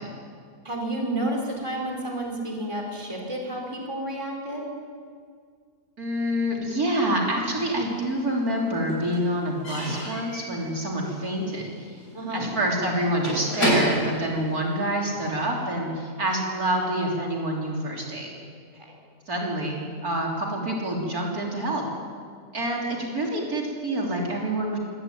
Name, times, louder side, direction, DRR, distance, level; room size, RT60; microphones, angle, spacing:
voice 1, 0.6-4.7 12.1-12.5 18.7-19.0, right 1 dB, 15° right, 0 dB, 4.3 m, -31 dB
voice 2, 6.0-12.0 12.3-18.3 19.3-21.8 22.5-24.8, right 1 dB, 65° right, -2 dB, 3.9 m, -27 dB
Slam / Squeak / Wood, 7.4-8.2 8.5-15.3, right 1 dB, 85° left, 7.7 m, -30 dB
25.0 x 15.5 x 9.3 m, 2.1 s
omnidirectional pair, 1.7 m